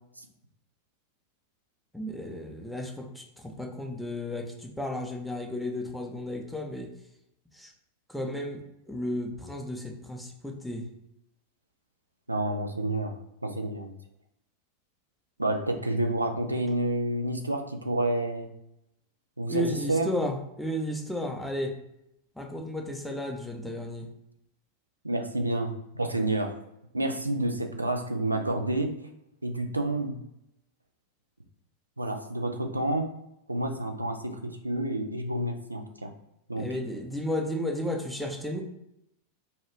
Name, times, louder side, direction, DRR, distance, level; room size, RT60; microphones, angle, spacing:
voice 1, 1.9-3.0 3.6-6.9 7.6-7.7 8.1-9.8 10.1-10.8 19.5-21.7 22.4-24.1 36.6-38.6, left 1 dB, ahead, 1 dB, 0.6 m, -33 dB
voice 2, 12.3-13.1 13.4-13.9 15.4-18.5 19.4-20.1 25.0-26.5 26.9-29.0 29.4-30.2 32.0-33.1 33.5-36.1 36.5-36.7, right 1 dB, 85° right, 5 dB, 0.4 m, -29 dB
2.8 x 2.3 x 3.2 m, 0.82 s
figure-of-eight pair, 90°, 0 cm